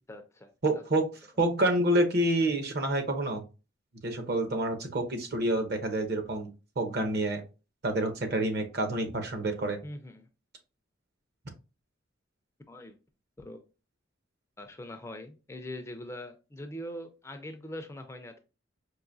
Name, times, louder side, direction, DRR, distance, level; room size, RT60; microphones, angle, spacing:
voice 1, 0.1-0.8 9.8-10.3 12.7-13.0 13.4-13.6 14.6-18.4, left 1 dB, 15° left, 6 dB, 0.4 m, -42 dB
voice 2, 0.6-1.1 1.4-3.4 4.0-6.5 6.8-7.4 7.8-9.8, right 1 dB, 55° right, 6 dB, 0.8 m, -28 dB
4.8 x 2.6 x 2.6 m, 0.31 s
head